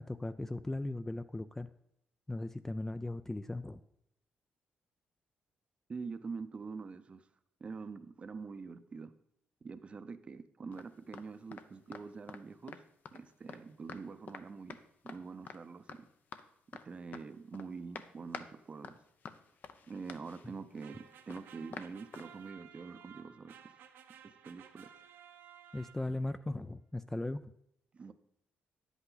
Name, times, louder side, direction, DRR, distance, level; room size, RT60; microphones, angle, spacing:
voice 1, 0.0-1.7 2.3-3.8 25.7-27.5, left 2 dB, 10° left, 11 dB, 0.3 m, -38 dB
voice 2, 5.9-7.2 7.6-9.1 9.6-12.8 13.1-14.8 15.0-16.1 16.7-19.0 19.9-23.5 24.4-24.9 27.9-28.1, right 4 dB, 35° right, 12 dB, 0.6 m, -45 dB
sound 1, 10.7-11.3 11.5-11.7 11.9-12.4 12.7-13.6 13.9-14.0 14.3-14.4 14.7-15.2 15.5-15.6 15.9-16.4 16.7-16.8 17.1-17.7 17.9-18.5 18.8-22.3, left 6 dB, 55° left, 0.6 m, -48 dB
sound 2, 20.8-26.3, right 8 dB, 85° right, 0.9 m, -56 dB
9.8 x 8.1 x 3.9 m, 0.77 s
cardioid pair, 120°, 4 cm